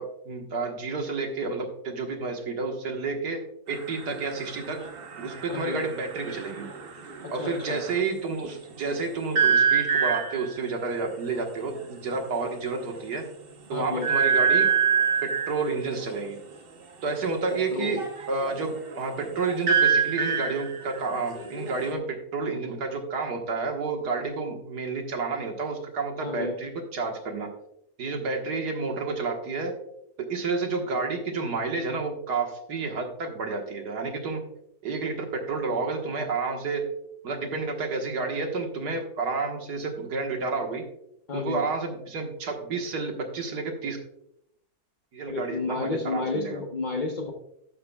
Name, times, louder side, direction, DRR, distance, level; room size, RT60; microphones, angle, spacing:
voice 1, 0.0-3.4 3.7-4.8 5.2-6.7 7.3-13.2 13.7-14.7 15.2-16.4 17.0-18.0 18.3-27.5 28.0-29.7 30.3-34.4 34.8-36.8 37.2-40.8 41.3-44.0 45.1-46.6, right 4 dB, 80° right, 3 dB, 2.0 m, -30 dB
sound 1, 3.7-8.1 9.3-10.6 11.8-11.9 12.1-12.4 12.8-12.9 14.0-15.6 17.8-21.9, right 7 dB, 45° right, 1.0 m, -26 dB
voice 2, 5.5-5.9 7.2-7.8 13.7-14.1 17.7-18.0 26.2-26.6 41.3-41.6 45.3-47.3, left 3 dB, 40° left, 2 dB, 0.7 m, -31 dB
11.5 x 9.0 x 2.3 m, 0.76 s
omnidirectional pair, 1.7 m